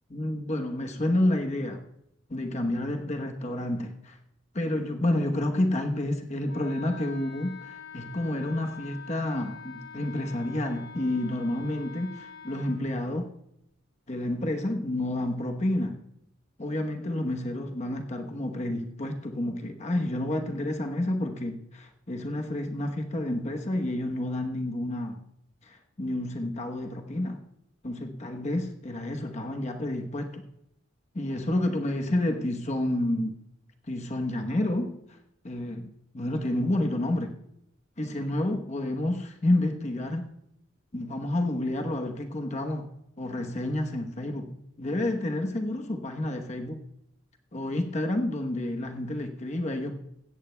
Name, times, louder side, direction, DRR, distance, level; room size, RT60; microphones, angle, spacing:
voice 1, 0.1-1.8 2.3-4.2 4.5-13.3 14.1-16.0 16.6-25.2 25.6-27.4 27.8-30.5 31.1-33.4 33.9-35.2 35.4-37.3 38.0-40.3 40.9-42.9 43.2-46.8 47.5-50.0, left 1 dB, 35° left, 4 dB, 1.0 m, -29 dB
Wind instrument woodwind instrument, 6.5-12.8, left 5 dB, 65° left, 5.7 m, -45 dB
17.0 x 14.0 x 2.2 m, 0.78 s
head